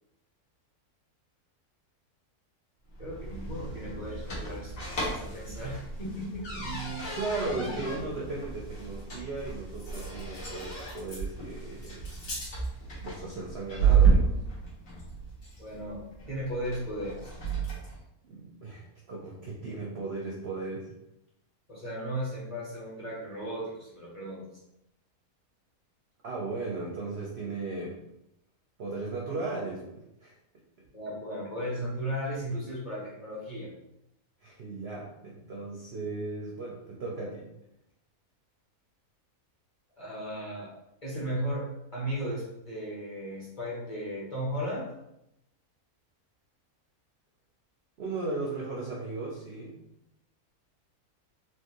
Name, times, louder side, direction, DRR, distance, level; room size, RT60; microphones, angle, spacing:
sound 1, 2.9-18.0, right 5 dB, 65° left, 1.5 m, -31 dB
voice 1, 3.0-6.8 15.6-17.3 21.7-24.5 30.9-33.7 40.0-40.7 41.0-44.9, equal, 25° left, -7 dB, 1.1 m, -36 dB
voice 2, 6.6-12.1 13.0-14.4 18.3-20.9 26.2-28.0 28.8-30.3 34.4-37.5 48.0-49.8, right 3 dB, 60° right, -3 dB, 0.7 m, -36 dB
3.4 x 2.9 x 2.9 m, 0.83 s
omnidirectional pair, 1.6 m